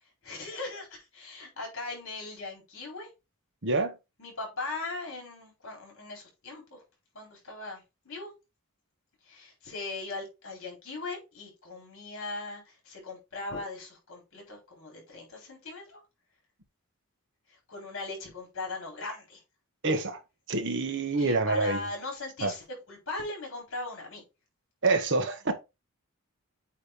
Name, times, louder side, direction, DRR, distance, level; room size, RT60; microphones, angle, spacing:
voice 1, 0.2-3.1 4.2-6.8 7.1-8.3 9.2-16.0 17.5-19.4 21.2-24.2, left 3 dB, 60° left, 4.0 m, -39 dB
voice 2, 3.6-3.9 19.8-20.2 20.5-21.8 22.4-22.5 24.8-25.5, right 3 dB, 55° right, 1.2 m, -26 dB
8.4 x 3.3 x 4.5 m
head